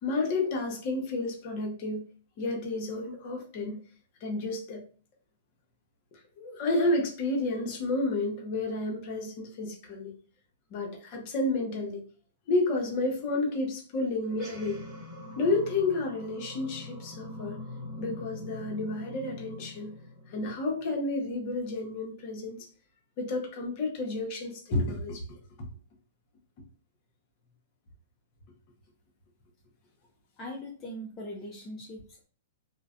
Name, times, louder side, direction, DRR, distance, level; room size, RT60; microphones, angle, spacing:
voice 1, 0.0-2.0 2.4-3.8 4.2-4.8 6.4-10.1 10.7-12.0 12.5-14.8 15.4-17.6 18.0-19.9 20.3-22.7 23.2-25.2, left 2 dB, 45° left, 1 dB, 0.8 m, -31 dB
sound 1, 14.2-21.0, left 2 dB, 20° right, 1.1 m, -43 dB
voice 2, 30.4-32.2, equal, 20° left, -2 dB, 0.5 m, -41 dB
2.4 x 2.1 x 2.4 m, 0.40 s
hypercardioid pair, 125°, 0 cm